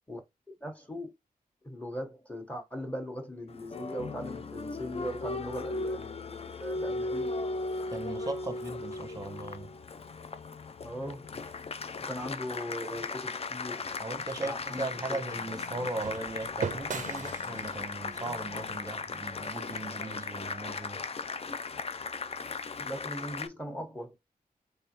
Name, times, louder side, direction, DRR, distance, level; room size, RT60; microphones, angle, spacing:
voice 1, 0.6-1.1 1.6-7.4 10.8-11.3 12.0-13.9 14.4-14.9 21.5-21.6 22.8-24.1, equal, 10° left, 1.1 m, -39 dB
Applause, 3.5-23.5, left 3 dB, 40° left, 0.4 m, -37 dB
voice 2, 7.9-9.7 14.0-21.0, right 2 dB, 25° right, 0.8 m, -38 dB
sound 1, 13.8-20.0, right 6 dB, 55° right, 0.4 m, -42 dB
3.5 x 3.3 x 2.9 m
wide cardioid pair, 115°, 16 cm